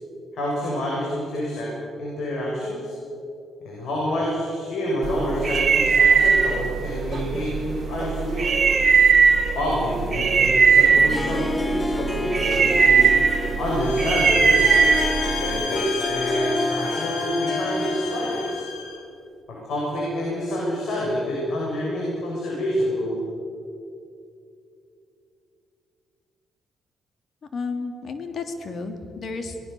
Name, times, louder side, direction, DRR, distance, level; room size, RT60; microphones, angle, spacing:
voice 1, 0.3-1.7 2.0-2.9 3.6-8.7 9.5-13.1 13.6-14.7 15.4-18.6 19.5-23.2, left 1 dB, 70° left, -4 dB, 7.0 m, -27 dB
sound 1, 5.0-15.7, right 6 dB, 40° right, 2.1 m, -20 dB
Harp, 10.9-18.8, left 2 dB, 20° left, 0.7 m, -30 dB
sound 2, 13.7-19.0, left 5 dB, 90° left, 3.1 m, -32 dB
voice 2, 27.5-29.6, left 4 dB, 50° left, 6 dB, 3.0 m, -32 dB
24.5 x 19.5 x 7.0 m, 2.6 s
cardioid pair, 90°, 0 cm